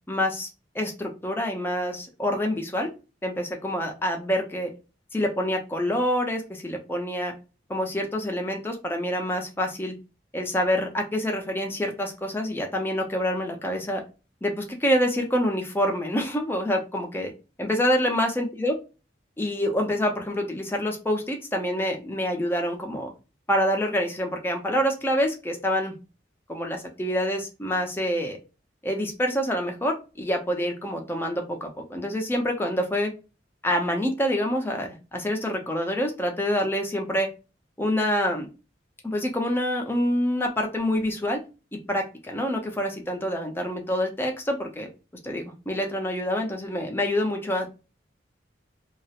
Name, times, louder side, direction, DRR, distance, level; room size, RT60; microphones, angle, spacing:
voice 1, 0.1-0.5 0.7-2.9 3.2-4.7 5.1-7.3 7.7-9.9 10.3-14.0 14.4-17.3 17.6-18.7 19.4-23.1 23.5-25.9 26.5-28.4 28.8-33.1 33.6-37.3 37.8-38.5 39.0-41.4 41.7-44.9 45.2-47.8, equal, 10° left, 2 dB, 0.5 m, -26 dB
2.3 x 2.0 x 2.8 m, 0.31 s
head